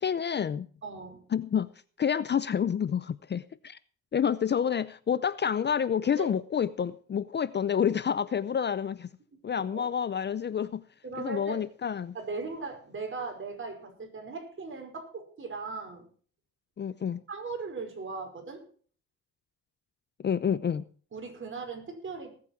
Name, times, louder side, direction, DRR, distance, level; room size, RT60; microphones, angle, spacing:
voice 1, 0.0-0.7 1.3-1.7 2.0-3.8 4.1-9.1 9.4-10.8 11.2-12.1 16.8-17.2 20.2-20.9, left 8 dB, 35° left, 0.6 m, -28 dB
voice 2, 0.8-1.3 6.2-6.3 9.7-9.9 11.0-11.6 12.1-16.1 17.3-18.6 21.1-22.3, right 4 dB, 40° right, 5.4 m, -38 dB
19.0 x 8.6 x 4.6 m
cardioid pair, 90°, 30 cm